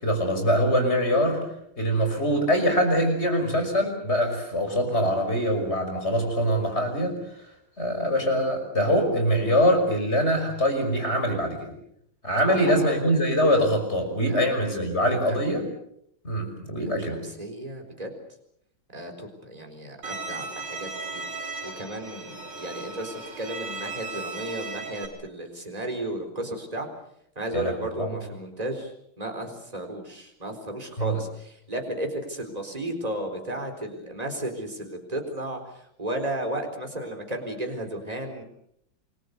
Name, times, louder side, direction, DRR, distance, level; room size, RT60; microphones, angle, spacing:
voice 1, 0.0-1.4 1.8-7.2 7.8-11.7 12.2-15.7 16.2-17.2 27.5-28.1 31.0-31.2, equal, 30° left, 5 dB, 6.1 m, -23 dB
voice 2, 12.4-12.9 14.3-14.5 15.3-15.4 16.8-18.1 18.9-21.2 21.6-26.9 27.4-28.9 29.2-35.6 36.0-38.4, right 1 dB, 15° right, 4 dB, 4.4 m, -34 dB
Bowed string instrument, 20.0-25.1, right 3 dB, 85° right, 4.5 m, -36 dB
28.5 x 22.5 x 6.9 m, 0.73 s
omnidirectional pair, 2.3 m